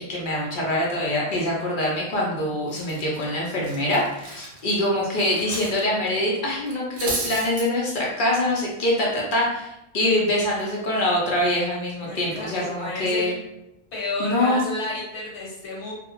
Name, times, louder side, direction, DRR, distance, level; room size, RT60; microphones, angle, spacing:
voice 1, 0.1-13.3 14.2-14.6, left 1 dB, 60° left, -3 dB, 0.6 m, -24 dB
Cutlery silverware, 2.1-2.3 2.7-5.8 6.1-6.2 6.7-7.7, right 3 dB, 60° right, 0.7 m, -33 dB
voice 2, 12.0-13.3 13.9-15.9, left 2 dB, 80° left, -5 dB, 1.2 m, -32 dB
2.2 x 2.0 x 2.9 m, 0.88 s
omnidirectional pair, 1.1 m